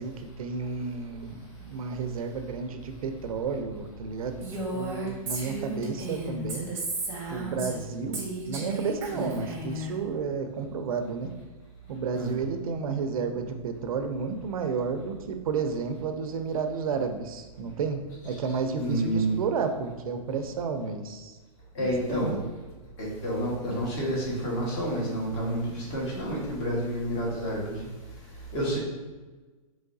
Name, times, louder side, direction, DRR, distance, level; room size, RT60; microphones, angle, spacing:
voice 1, 0.0-6.7 7.3-11.3 11.9-21.4 21.8-22.4, right 5 dB, 70° right, 6 dB, 0.5 m, -32 dB
Female speech woman speaking, 4.4-7.8 8.1-9.9, right 2 dB, 15° right, 0.8 m, -34 dB
voice 2, 18.8-19.4 21.8-22.3 23.0-27.7 28.5-28.8, right 1 dB, 35° left, -4 dB, 1.3 m, -29 dB
4.7 x 3.1 x 2.6 m, 1.2 s
hypercardioid pair, 145°, 19 cm